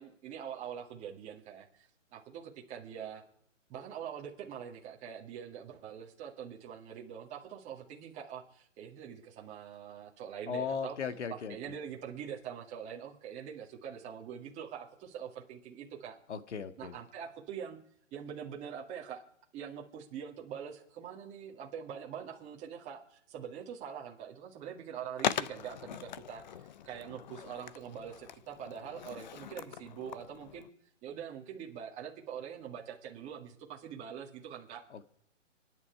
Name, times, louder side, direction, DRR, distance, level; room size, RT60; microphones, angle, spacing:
voice 1, 0.0-3.2 3.7-11.0 11.3-16.2 16.8-17.8 18.1-19.2 19.5-26.4 26.9-30.7 31.0-34.8, right 8 dB, 20° right, -1 dB, 2.1 m, -44 dB
voice 2, 10.5-11.6 16.3-17.0 34.9-35.1, left 6 dB, 65° left, 10 dB, 1.9 m, -37 dB
Skateboard, 25.2-30.7, left 9 dB, 35° left, 0.6 m, -40 dB
26.0 x 10.5 x 4.8 m, 0.71 s
hypercardioid pair, 150°, 38 cm